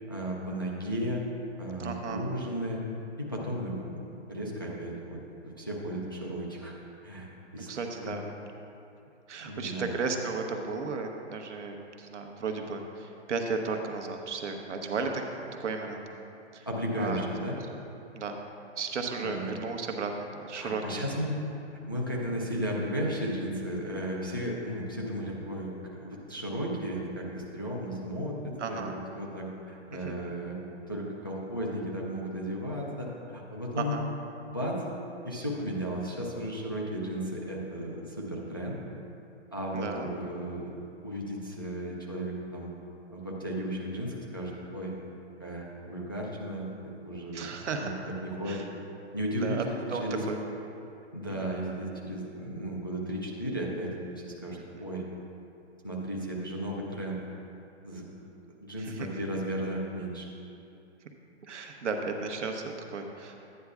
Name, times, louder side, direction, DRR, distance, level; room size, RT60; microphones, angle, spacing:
voice 1, 0.1-1.2 1.6-2.8 3.2-5.2 5.4-6.7 7.0-7.3 7.5-7.7 8.0-8.2 9.5-9.9 16.7-17.5 19.2-19.5 20.6-21.4 21.9-28.8 29.2-30.6 30.9-34.0 34.5-34.8 35.2-38.8 39.5-40.8 41.0-42.7 43.1-44.9 45.4-47.4 47.8-47.9 48.2-48.6 49.1-50.2 51.1-55.0 55.8-57.2 57.8-58.1 58.5-60.3, equal, 20° left, -3 dB, 0.4 m, -34 dB
voice 2, 1.8-2.3 7.7-8.3 9.3-16.2 16.5-16.7 17.0-17.3 18.1-18.4 18.8-21.1 21.9-22.0 28.6-28.9 29.9-30.2 33.8-34.0 39.7-40.1 47.3-47.9 48.4-48.7 49.4-50.4 51.3-51.5 54.7-54.8 58.8-59.1 61.4-63.4, right 4 dB, 80° right, 4 dB, 1.1 m, -34 dB
11.0 x 9.4 x 2.4 m, 2.7 s
hypercardioid pair, 170°, 35 cm